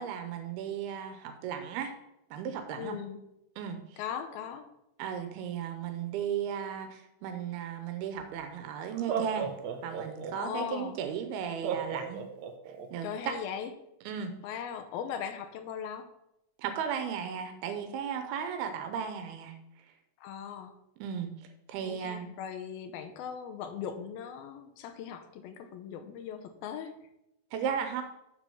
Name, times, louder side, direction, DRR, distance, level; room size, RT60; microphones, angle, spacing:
voice 1, 0.0-1.9 2.3-3.0 3.6-4.0 5.0-9.5 9.8-12.2 12.9-13.3 14.1-14.4 16.6-19.5 21.0-21.3 21.7-22.3 27.5-28.0, right 8 dB, 90° right, 7 dB, 2.8 m, -35 dB
voice 2, 2.8-3.2 4.0-4.7 10.3-11.0 13.0-13.7 14.4-16.0 20.2-20.7 21.8-26.9, left 8 dB, 80° left, 6 dB, 2.7 m, -39 dB
Laughter, 8.2-8.3 8.9-10.6 11.6-12.9, right 7 dB, 70° right, 1.6 m, -34 dB
7.1 x 6.1 x 7.0 m, 0.85 s
omnidirectional pair, 4.3 m